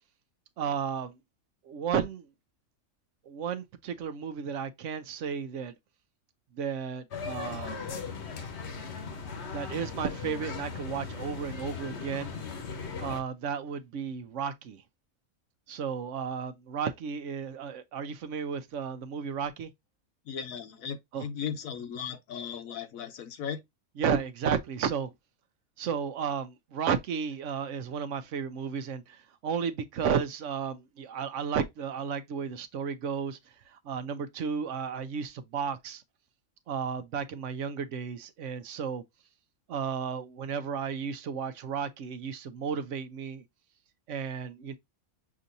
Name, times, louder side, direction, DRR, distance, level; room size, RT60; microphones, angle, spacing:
voice 1, 0.6-1.2 1.6-2.3 3.3-5.7 6.6-7.8 9.5-12.3 13.0-14.8 15.7-19.7 21.1-21.2 24.0-25.1 25.8-33.4 33.7-36.0 36.7-39.0 39.7-43.4 44.1-44.8, right 7 dB, 70° right, 0.9 m, -33 dB
sound 1, 7.1-13.2, left 5 dB, 55° left, 1.1 m, -38 dB
voice 2, 20.3-23.6, left 7 dB, 80° left, 1.2 m, -37 dB
6.1 x 2.8 x 2.5 m
omnidirectional pair, 1.4 m